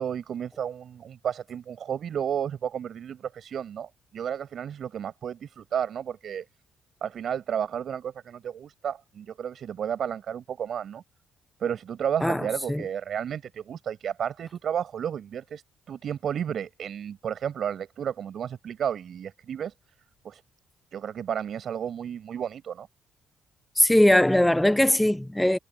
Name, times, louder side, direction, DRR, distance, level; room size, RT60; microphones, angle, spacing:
voice 1, 0.0-6.4 7.0-11.0 11.6-19.7 20.2-20.4 20.9-22.9, right 8 dB, 60° right, 7.5 m, -32 dB
voice 2, 12.2-12.8 23.8-25.6, left 1 dB, 5° left, 0.8 m, -20 dB
cardioid pair, 90°, 0 cm